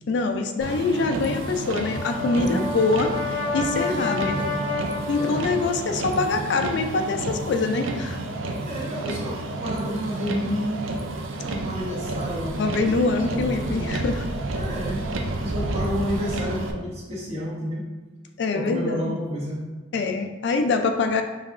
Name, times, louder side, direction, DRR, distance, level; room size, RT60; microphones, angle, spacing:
voice 1, 0.1-4.5 5.1-8.2 12.6-14.2 18.4-19.1 19.9-21.2, left 3 dB, 60° left, 6 dB, 0.3 m, -24 dB
Motor vehicle (road), 0.6-16.7, right 2 dB, 80° right, 0.5 m, -31 dB
Brass instrument, 1.7-5.9, left 3 dB, 30° left, 0.8 m, -30 dB
voice 2, 2.3-2.7 3.7-4.7 5.1-5.5 8.6-10.9 11.4-14.0 14.5-15.0 15.4-17.8 18.5-19.6, equal, 35° right, -5 dB, 1.1 m, -30 dB
5.3 x 3.3 x 2.4 m, 1.3 s
head